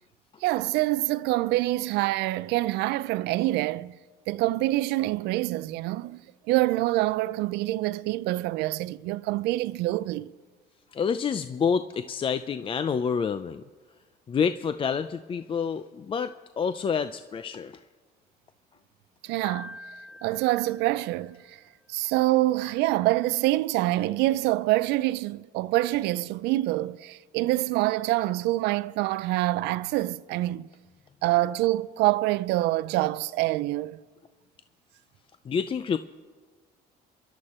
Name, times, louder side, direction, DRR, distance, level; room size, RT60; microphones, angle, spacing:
voice 1, 0.4-4.0 4.3-6.2 6.5-10.3 19.2-19.7 20.2-21.6 21.9-30.7 31.2-34.0, right 17 dB, 90° right, 0.4 m, -26 dB
voice 2, 10.9-13.6 14.3-17.8 35.4-36.0, left 6 dB, 30° left, 0.5 m, -28 dB
Piano, 19.4-21.5, left 2 dB, 85° left, 4.3 m, -46 dB
27.5 x 11.5 x 4.3 m
cardioid pair, 110°, 17 cm